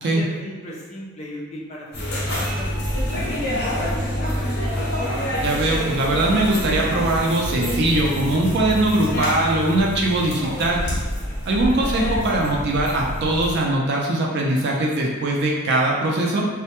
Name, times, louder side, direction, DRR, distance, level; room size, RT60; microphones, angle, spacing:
voice 1, 0.0-2.8 3.2-4.9, equal, 30° left, -3 dB, 0.4 m, -36 dB
sound 1, 1.9-13.6, equal, 50° left, 0.8 m, -27 dB
sound 2, 2.7-8.8, equal, 10° right, 0.7 m, -32 dB
voice 2, 5.4-10.8 11.5-16.4, right 2 dB, 50° right, -2 dB, 0.4 m, -21 dB
2.1 x 2.1 x 2.8 m, 1.4 s
head